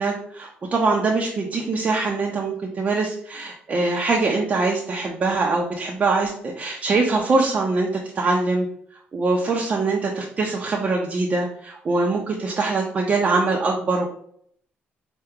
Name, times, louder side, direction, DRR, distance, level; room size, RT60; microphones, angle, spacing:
voice 1, 0.0-7.9 8.1-8.7 9.1-14.1, right 3 dB, 35° right, -1 dB, 0.6 m, -23 dB
5.6 x 2.2 x 3.6 m, 0.65 s
cardioid pair, 125°, 4 cm